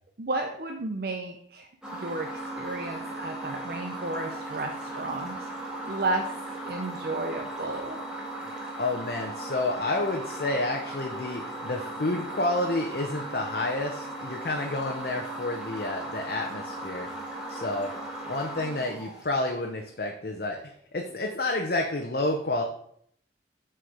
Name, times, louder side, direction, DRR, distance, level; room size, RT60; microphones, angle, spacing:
voice 1, 0.2-1.7 2.0-6.3 6.6-8.0, right 2 dB, 55° right, 3 dB, 0.7 m, -33 dB
sound 1, 1.8-19.8, right 1 dB, 5° right, 1.6 m, -37 dB
voice 2, 8.8-17.1 17.5-17.9 18.3-22.6, left 2 dB, 55° left, 1 dB, 0.8 m, -30 dB
8.0 x 4.6 x 5.0 m, 0.65 s
head